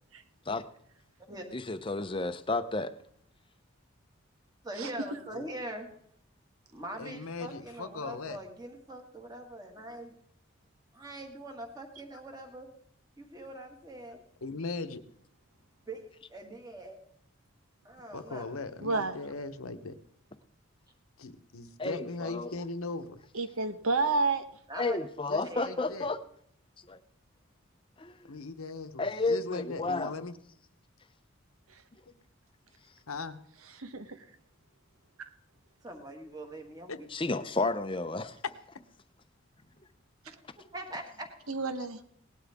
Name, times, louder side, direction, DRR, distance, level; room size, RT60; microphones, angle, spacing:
voice 1, 1.5-2.9 21.8-22.5 24.8-26.2 26.9-27.0 28.0-28.4 29.0-30.1 37.1-38.4, left 3 dB, 25° left, 0.6 m, -31 dB
voice 2, 4.6-5.9 6.7-10.1 10.9-12.7 13.2-14.2 15.9-17.0 17.8-18.5 24.7-25.0 25.5-25.7 35.8-37.1 40.3-41.3, right 1 dB, 20° right, 1.9 m, -43 dB
voice 3, 7.0-8.4 14.4-15.0 18.1-20.0 21.2-23.2 25.3-26.1 28.3-30.3 33.1-33.4 36.9-37.0 38.4-38.5, left 3 dB, 85° left, 1.0 m, -39 dB
voice 4, 18.8-19.2 23.3-24.4 31.7-31.8 33.7-34.2 40.2-40.3 41.5-42.0, right 3 dB, 85° right, 1.1 m, -30 dB
18.5 x 12.0 x 3.6 m
head